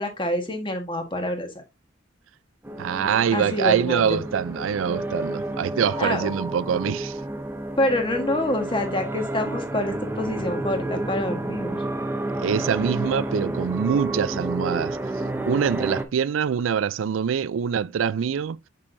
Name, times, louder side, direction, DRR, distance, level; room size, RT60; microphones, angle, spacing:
voice 1, 0.0-1.6 3.3-4.2 6.0-6.3 7.8-11.8, left 1 dB, 25° left, 1.4 m, -26 dB
sound 1, 2.6-16.0, right 1 dB, 10° right, 0.7 m, -30 dB
voice 2, 2.8-7.2 12.4-15.0 15.5-18.6, right 7 dB, 90° right, 0.4 m, -24 dB
6.3 x 6.0 x 2.6 m
head